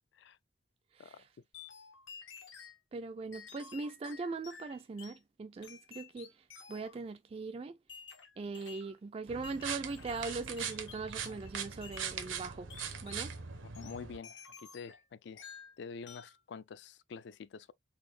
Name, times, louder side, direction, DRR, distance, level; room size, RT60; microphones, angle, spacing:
voice 1, 1.0-1.3 2.9-6.3 6.7-7.7 8.4-12.7 13.0-13.3, right 3 dB, 30° right, 0.3 m, -40 dB
sound 1, 1.5-2.8 3.3-5.2 5.6-7.0 7.9-9.0 9.4-11.5 11.8-12.1 12.7-13.3 13.7-15.1 15.4-15.7 16.1-16.4, left 6 dB, 75° left, 1.1 m, -52 dB
sound 2, 9.3-14.2, right 7 dB, 85° right, 0.9 m, -41 dB
voice 2, 13.8-14.3 14.7-15.0 15.3-15.4 15.8-17.7, left 5 dB, 60° left, 0.3 m, -46 dB
4.1 x 2.6 x 3.3 m
head